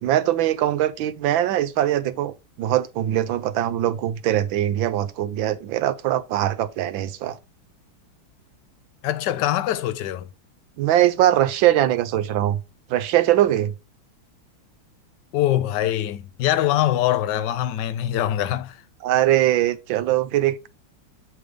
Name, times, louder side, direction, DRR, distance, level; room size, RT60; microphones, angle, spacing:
voice 1, 0.0-7.4 10.8-12.6 12.9-13.7 19.0-20.7, right 13 dB, 75° right, 1.4 m, -21 dB
voice 2, 9.0-10.3 15.3-18.8, left 12 dB, 70° left, 1.1 m, -23 dB
7.8 x 3.4 x 5.1 m
omnidirectional pair, 2.2 m